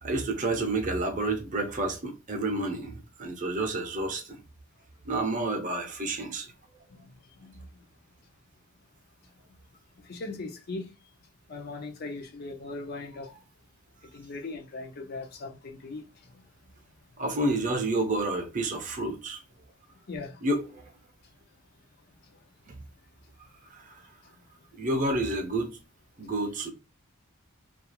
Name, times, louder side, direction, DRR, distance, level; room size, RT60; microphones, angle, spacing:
voice 1, 0.0-4.4 5.0-6.5 17.2-19.4 20.4-20.9 22.7-22.8 23.7-24.0 24.7-25.8 26.2-26.7, right 2 dB, 35° right, 0.6 m, -30 dB
voice 2, 10.1-10.9 11.5-13.3 14.1-16.0 20.1-20.4, left 3 dB, 45° left, 0.5 m, -39 dB
2.4 x 2.3 x 2.8 m
head